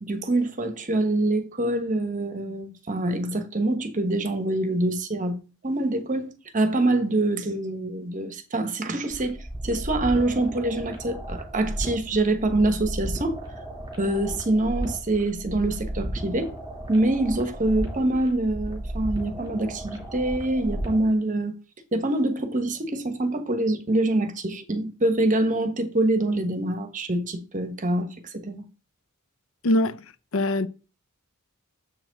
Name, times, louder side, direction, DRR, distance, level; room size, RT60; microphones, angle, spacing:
voice 1, 0.0-5.4 5.6-9.4 9.6-13.4 14.0-16.5 16.9-21.6 21.9-28.1 28.3-28.6, right 2 dB, 40° right, 1.1 m, -25 dB
sound 1, 9.1-21.1, right 1 dB, 20° right, 3.0 m, -34 dB
voice 2, 29.6-30.0 30.3-30.7, left 1 dB, 70° left, 0.6 m, -22 dB
7.4 x 5.9 x 4.0 m
head